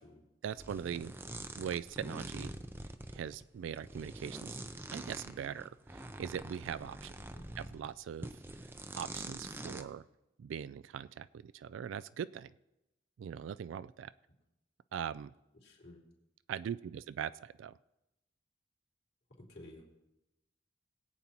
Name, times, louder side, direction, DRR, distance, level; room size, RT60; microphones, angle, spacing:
voice 1, 0.4-1.1 1.6-2.5 3.1-4.6 4.9-7.1 7.6-8.3 9.0-10.0 10.4-12.5 13.2-14.1 14.9-15.3 16.5-17.7, right 8 dB, 90° right, 14 dB, 0.3 m, -41 dB
sound 1, 0.6-7.9 8.2-9.8, right 1 dB, 10° right, 0.5 m, -45 dB
voice 2, 15.6-16.0 19.4-19.8, left 1 dB, 55° left, -2 dB, 3.3 m, -53 dB
21.0 x 8.4 x 2.9 m, 0.93 s
head